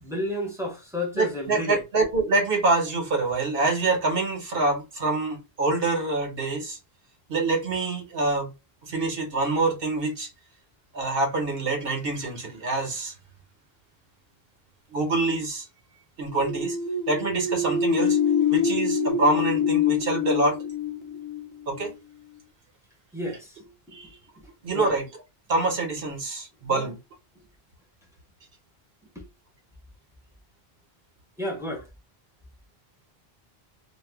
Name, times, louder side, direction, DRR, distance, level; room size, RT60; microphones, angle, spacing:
voice 1, 0.0-1.8 23.1-24.5 24.7-24.9 26.7-26.9 29.2-29.3 31.4-31.8, left 1 dB, 5° right, 0.8 m, -32 dB
voice 2, 1.1-6.8 7.3-8.5 8.8-10.3 10.9-13.1 14.9-15.7 16.2-16.8 17.1-18.2 18.5-20.6 21.7-21.9 23.9-24.1 24.6-25.1 25.5-27.0, right 3 dB, 65° right, 1.2 m, -26 dB
sound 1, 16.2-21.9, left 5 dB, 30° left, 0.5 m, -25 dB
2.5 x 2.3 x 3.5 m
omnidirectional pair, 1.0 m